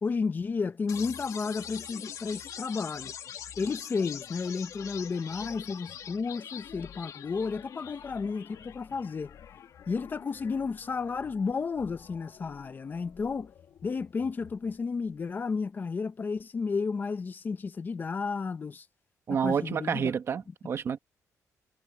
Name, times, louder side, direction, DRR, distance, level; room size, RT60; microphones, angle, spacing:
voice 1, 0.0-3.1 3.6-9.3 9.9-13.5 13.8-18.9 19.3-20.1, left 5 dB, 30° left, 0.9 m, -32 dB
sound 1, 0.9-14.9, left 8 dB, 65° left, 2.2 m, -45 dB
voice 2, 19.3-21.0, right 7 dB, 45° right, 1.2 m, -29 dB
cardioid pair, 150°, 6 cm